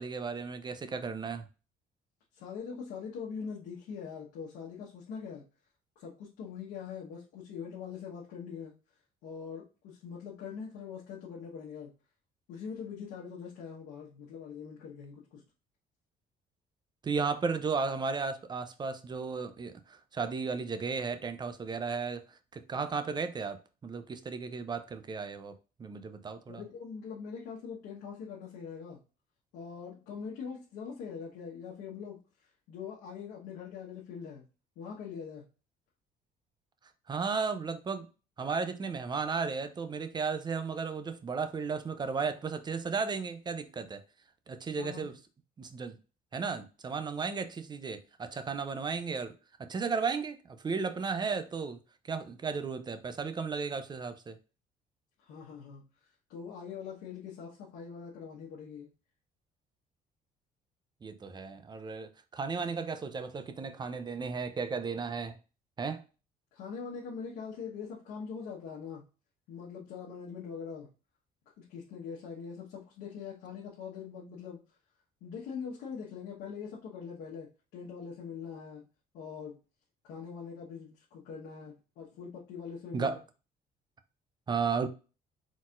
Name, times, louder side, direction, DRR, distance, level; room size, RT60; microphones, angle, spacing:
voice 1, 0.0-1.5 17.0-25.5 25.8-26.6 37.1-38.1 38.4-44.0 44.5-45.1 45.6-46.0 46.3-49.3 49.6-51.8 52.1-54.4 61.0-65.4 65.8-66.0 82.9-83.2 84.5-84.9, right 5 dB, 25° right, 0.5 m, -34 dB
voice 2, 2.3-5.4 6.0-8.7 9.2-11.9 12.5-15.4 26.5-29.0 29.5-32.2 32.7-34.5 34.8-35.4 44.8-45.1 55.2-55.8 56.3-58.9 66.5-69.0 69.5-70.9 71.6-74.6 75.2-78.8 79.1-79.6 80.0-83.2, left 6 dB, 85° left, 1.2 m, -43 dB
4.1 x 4.1 x 2.5 m
cardioid pair, 110°, 17 cm